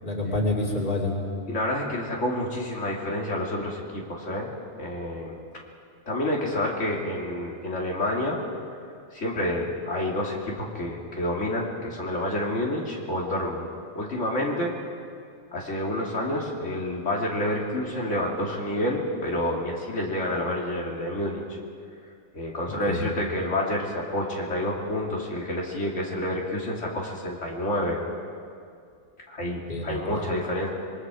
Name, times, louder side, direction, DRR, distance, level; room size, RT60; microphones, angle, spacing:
voice 1, 0.0-1.1 22.7-23.0 29.4-30.2, left 2 dB, 40° left, -2 dB, 3.1 m, -28 dB
voice 2, 1.5-4.5 4.8-5.3 6.1-8.4 9.1-13.7 13.9-14.7 15.5-21.6 22.3-28.0 29.3-30.7, left 1 dB, 80° left, -2 dB, 2.7 m, -28 dB
26.0 x 21.5 x 4.9 m, 2.3 s
omnidirectional pair, 1.2 m